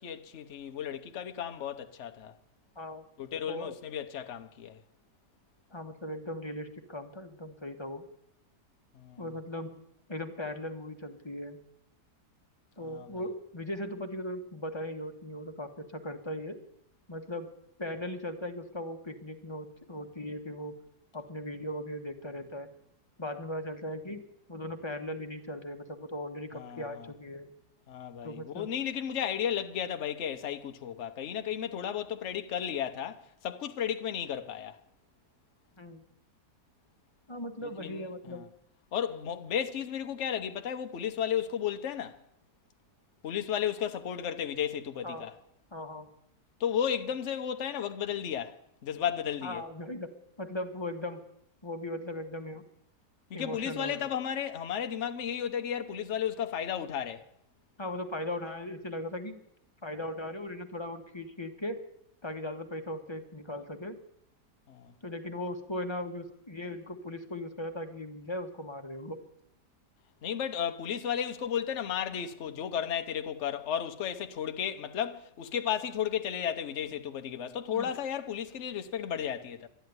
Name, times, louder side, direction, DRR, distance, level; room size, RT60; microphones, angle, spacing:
voice 1, 0.0-2.3 3.2-4.8 8.9-9.2 12.8-13.1 26.5-27.1 27.9-34.8 37.6-38.5 38.9-42.2 43.2-45.3 46.6-49.6 53.3-57.2 64.7-64.9 70.2-79.7, left 9 dB, 50° left, 1.1 m, -34 dB
voice 2, 5.7-8.0 9.2-9.7 10.1-11.6 12.8-16.6 17.1-17.5 17.8-20.7 21.1-22.7 23.2-24.2 24.5-27.5 28.2-28.7 35.8-36.0 37.3-38.4 45.0-45.3 45.7-46.1 49.4-50.1 50.4-51.2 51.6-52.6 53.3-54.0 57.8-59.4 59.8-61.8 62.2-64.0 65.0-69.2 77.7-77.9, left 1 dB, 20° left, 1.1 m, -38 dB
12.5 x 10.5 x 9.5 m
omnidirectional pair, 1.8 m